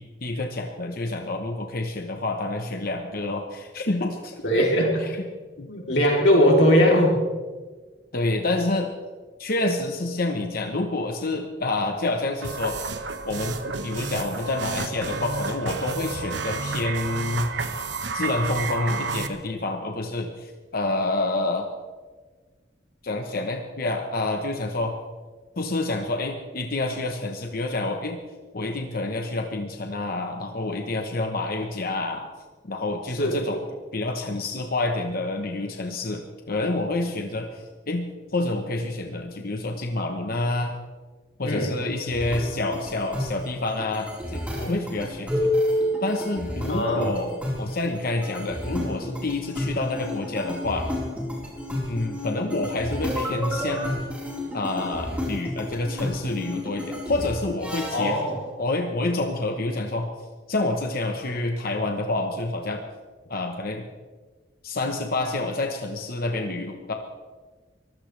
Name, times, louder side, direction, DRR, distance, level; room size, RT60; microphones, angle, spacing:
voice 1, 0.0-4.3 5.0-5.2 5.6-5.7 8.1-8.9 9.4-12.8 13.3-17.5 18.1-21.7 23.0-25.0 25.6-28.2 28.5-32.3 32.6-33.6 33.9-40.8 41.4-45.6 46.0-50.9 51.9-53.9 54.5-58.2 58.6-60.1 60.5-62.8 63.3-63.9 64.6-66.9, left 2 dB, 55° left, 4 dB, 1.2 m, -28 dB
voice 2, 4.4-5.1 5.7-7.2 33.2-33.4 41.4-41.7 46.7-47.1 57.9-58.4, equal, 75° left, -1 dB, 3.5 m, -20 dB
sound 1, 12.4-19.3, right 4 dB, 75° right, 1.2 m, -31 dB
sound 2, 42.1-58.2, left 1 dB, 10° right, 4.5 m, -30 dB
23.5 x 15.5 x 3.4 m, 1.4 s
head